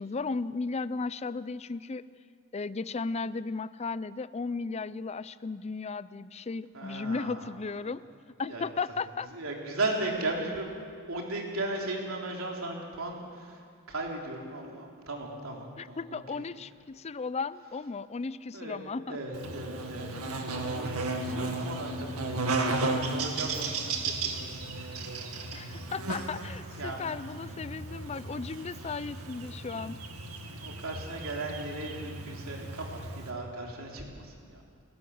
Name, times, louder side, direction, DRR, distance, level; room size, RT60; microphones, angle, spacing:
voice 1, 0.0-2.0 2.5-8.0 8.4-9.3 15.8-19.2 25.5-30.0, left 4 dB, 30° left, 16 dB, 0.4 m, -35 dB
voice 2, 6.7-7.5 7.8-8.0 8.5-8.6 9.3-10.8 11.1-16.5 18.5-26.1 26.8-27.0 30.5-34.6, right 2 dB, 65° right, 0 dB, 3.6 m, -37 dB
Buzz, 19.3-33.3, right 3 dB, 85° right, 2.1 m, -35 dB
30.0 x 12.5 x 7.9 m, 2.2 s
head